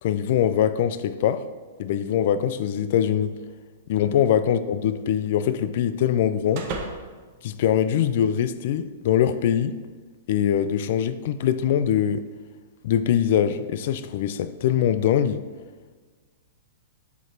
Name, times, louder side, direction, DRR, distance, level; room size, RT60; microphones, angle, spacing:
voice 1, 0.0-1.5 1.8-3.4 3.9-6.7 7.4-9.8 10.3-12.3 12.8-15.4, left 9 dB, 55° left, 0.3 m, -23 dB
sound 1, 4.0-8.4, right 3 dB, 45° right, 0.7 m, -40 dB
7.6 x 3.0 x 4.6 m
hypercardioid pair, 145°, 0 cm